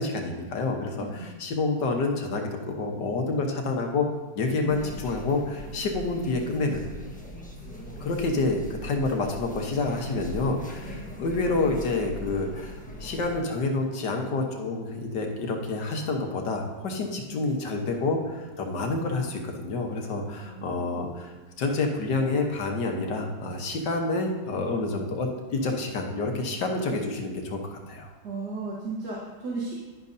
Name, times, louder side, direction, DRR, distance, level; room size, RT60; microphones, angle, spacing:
voice 1, 0.0-4.1 4.3-6.8 8.0-21.3 21.6-28.1, left 3 dB, 70° left, 3 dB, 1.7 m, -28 dB
voice 2, 1.0-1.3 10.8-11.1 20.3-21.2 28.2-29.8, right 3 dB, 65° right, -5 dB, 1.8 m, -36 dB
sound 1, 4.7-13.4, left 1 dB, 5° left, 0.9 m, -40 dB
11.0 x 10.5 x 2.7 m, 1.3 s
omnidirectional pair, 1.9 m